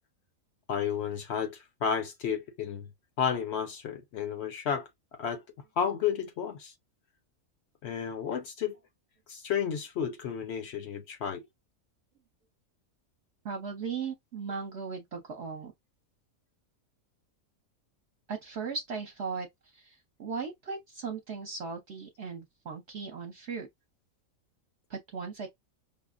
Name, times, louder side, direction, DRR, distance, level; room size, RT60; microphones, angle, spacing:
voice 1, 0.7-2.9 3.2-4.9 5.2-5.4 5.8-6.7 7.8-8.8 9.3-11.4, left 7 dB, 65° left, 0.8 m, -32 dB
voice 2, 13.4-15.7 18.3-23.7 24.9-25.5, right 5 dB, 55° right, 0.9 m, -37 dB
5.2 x 2.1 x 2.4 m
omnidirectional pair, 1.4 m